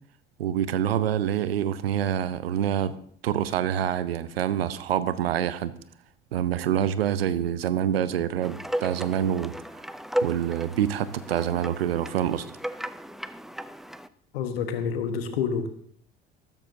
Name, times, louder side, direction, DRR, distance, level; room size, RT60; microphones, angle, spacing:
voice 1, 0.4-3.0 3.2-5.7 6.3-9.5 10.2-12.5, right 10 dB, 80° right, 15 dB, 0.7 m, -26 dB
sound 1, 8.4-14.1, right 1 dB, ahead, 0.4 m, -34 dB
voice 2, 14.3-15.7, left 6 dB, 75° left, 8 dB, 1.4 m, -28 dB
14.0 x 13.0 x 2.7 m, 0.62 s
figure-of-eight pair, 65°, 30 cm